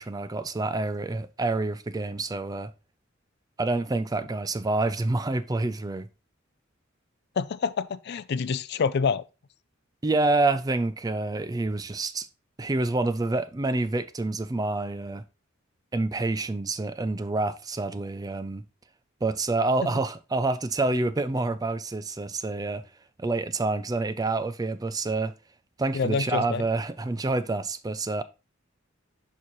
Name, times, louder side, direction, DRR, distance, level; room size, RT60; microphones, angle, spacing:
voice 1, 0.0-2.7 3.6-6.1 10.0-12.3 12.6-15.2 15.9-18.6 19.2-22.8 23.2-25.3 25.8-28.2, right 2 dB, 20° right, 0.4 m, -27 dB
voice 2, 7.4-9.2 25.9-26.7, left 5 dB, 55° left, 0.4 m, -27 dB
6.6 x 5.5 x 3.1 m
head